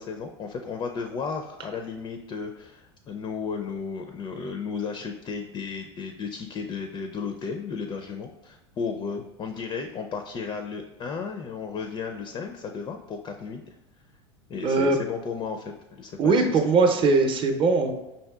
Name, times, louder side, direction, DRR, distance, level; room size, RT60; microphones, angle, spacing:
voice 1, 0.0-13.7 14.5-16.6, left 5 dB, 30° left, 6 dB, 0.4 m, -34 dB
voice 2, 14.6-15.0 16.2-17.9, right 4 dB, 35° right, 4 dB, 0.6 m, -20 dB
5.3 x 2.7 x 2.3 m, 1.0 s
hypercardioid pair, 85°, 14 cm